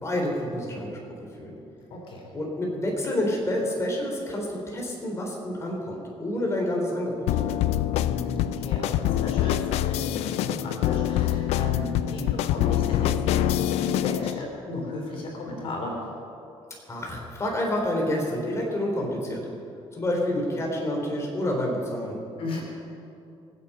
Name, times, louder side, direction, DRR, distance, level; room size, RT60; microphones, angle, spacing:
voice 1, 0.0-1.5 2.3-7.2 7.5-7.8 16.9-19.4 19.9-22.2, left 1 dB, 25° left, -1 dB, 3.6 m, -28 dB
voice 2, 1.9-2.2 8.0-16.0 22.4-22.6, left 2 dB, 60° left, 0 dB, 3.4 m, -34 dB
sound 1, 7.3-14.4, left 13 dB, 85° left, 0.5 m, -25 dB
25.0 x 8.5 x 5.6 m, 2.7 s
cardioid pair, 105°, 11 cm